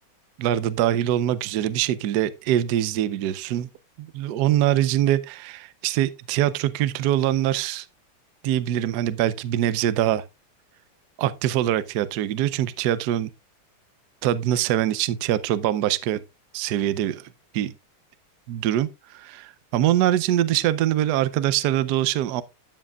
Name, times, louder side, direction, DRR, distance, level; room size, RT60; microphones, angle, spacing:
voice 1, 0.4-3.7 4.0-7.9 8.4-10.2 11.2-13.3 14.2-16.2 16.5-17.3 17.5-17.7 18.5-22.4, right 12 dB, 70° right, 1.0 m, -23 dB
12.5 x 7.6 x 2.3 m
omnidirectional pair, 2.3 m